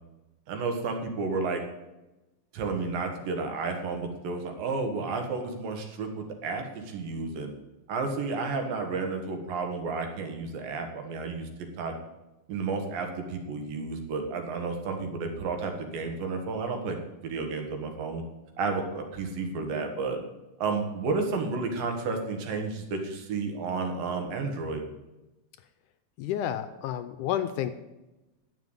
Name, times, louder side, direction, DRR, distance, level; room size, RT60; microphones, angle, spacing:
voice 1, 0.5-1.6 2.5-7.5 7.9-11.9 12.5-18.2 18.6-20.2 20.6-24.8, right 4 dB, 85° right, 4 dB, 3.3 m, -32 dB
voice 2, 26.2-27.7, left 11 dB, 80° left, 11 dB, 2.0 m, -30 dB
10.5 x 7.5 x 8.0 m, 1.0 s
omnidirectional pair, 3.9 m